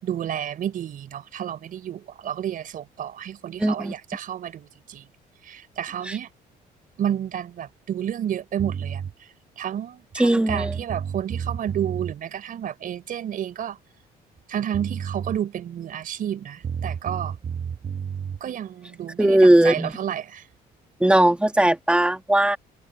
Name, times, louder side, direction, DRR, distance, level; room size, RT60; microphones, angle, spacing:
voice 1, 0.0-5.0 5.4-6.3 7.0-9.3 9.6-13.8 14.5-17.3 18.4-20.5, right 10 dB, 55° right, 4.2 m, -31 dB
voice 2, 3.6-3.9 6.1-6.2 10.2-10.7 19.2-19.9 21.0-22.6, right 1 dB, 5° right, 2.1 m, -18 dB
sound 1, 8.6-9.1 10.1-10.2 10.5-12.1 14.4-14.5 14.7-15.4 16.6-18.4, right 7 dB, 35° right, 1.2 m, -31 dB
cardioid pair, 110°, 17 cm